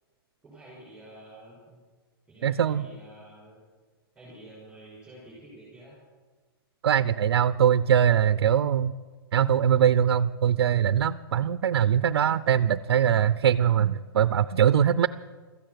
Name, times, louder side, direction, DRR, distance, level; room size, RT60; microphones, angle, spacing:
voice 1, 0.4-1.8 2.3-3.6 4.1-6.0, right 1 dB, 5° right, -8 dB, 5.7 m, -49 dB
voice 2, 2.4-2.9 6.8-8.9 9.3-15.1, right 9 dB, 90° right, 14 dB, 0.5 m, -22 dB
15.5 x 14.0 x 6.8 m, 1.4 s
hypercardioid pair, 160°, 13 cm